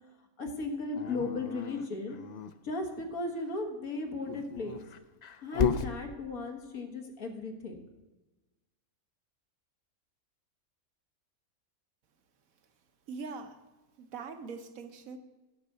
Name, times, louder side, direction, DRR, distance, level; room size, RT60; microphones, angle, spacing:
voice 1, 0.4-2.2 2.6-4.8 5.4-7.8, left 3 dB, 80° left, 3 dB, 2.0 m, -36 dB
Dog, 0.9-2.5 4.1-5.9, left 6 dB, 65° left, 0.4 m, -33 dB
voice 2, 13.1-13.6 14.0-15.2, right 4 dB, 75° right, 7 dB, 1.3 m, -42 dB
10.0 x 6.6 x 8.3 m, 1.1 s
omnidirectional pair, 1.5 m